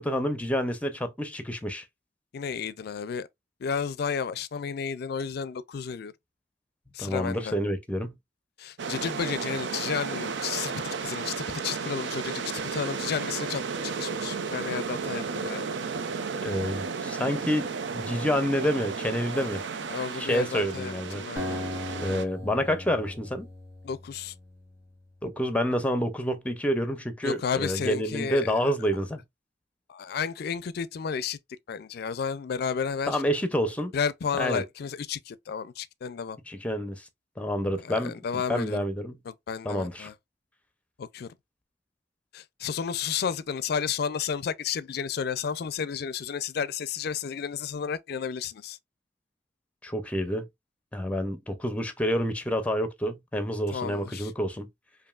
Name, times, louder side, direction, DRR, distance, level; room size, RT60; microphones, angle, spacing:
voice 1, 0.0-1.9 7.0-8.2 16.4-19.6 20.2-21.2 22.0-23.5 25.2-29.2 33.1-33.9 34.4-34.6 36.5-37.1 37.4-39.2 39.6-40.1 49.8-50.5 50.9-54.7, equal, 10° left, 0.6 m, -28 dB
voice 2, 2.3-3.3 3.6-6.1 6.9-7.5 8.6-12.4 12.7-15.7 19.3-22.1 23.8-24.3 27.2-28.7 29.9-31.4 31.7-33.2 33.9-36.4 37.8-38.9 39.3-40.1 41.0-41.3 42.3-48.8 53.7-54.3, left 6 dB, 60° left, 0.4 m, -32 dB
sound 1, 8.8-22.3, right 5 dB, 80° right, 0.5 m, -33 dB
Acoustic guitar, 21.4-24.9, left 2 dB, 15° right, 1.7 m, -38 dB
5.2 x 2.6 x 2.4 m
head